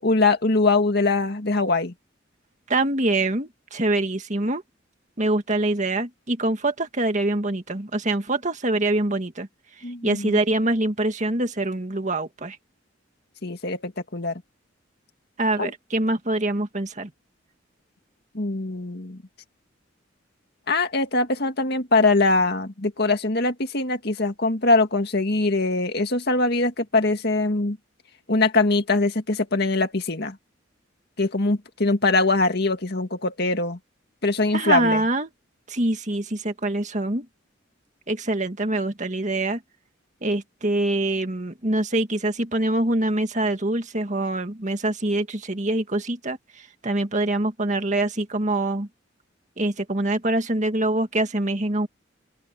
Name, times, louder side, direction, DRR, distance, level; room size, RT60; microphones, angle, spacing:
voice 1, 0.0-1.9 9.8-10.4 13.4-14.4 15.6-15.7 18.3-19.2 20.7-27.8 28.3-30.4 31.2-33.8 34.2-35.0, left 3 dB, 55° left, 2.1 m, -22 dB
voice 2, 2.7-4.6 5.2-9.5 10.0-12.6 15.4-17.1 34.5-35.3 35.7-37.3 38.1-39.6 40.2-48.9 49.6-51.9, right 2 dB, 40° right, 1.9 m, -24 dB
open air
head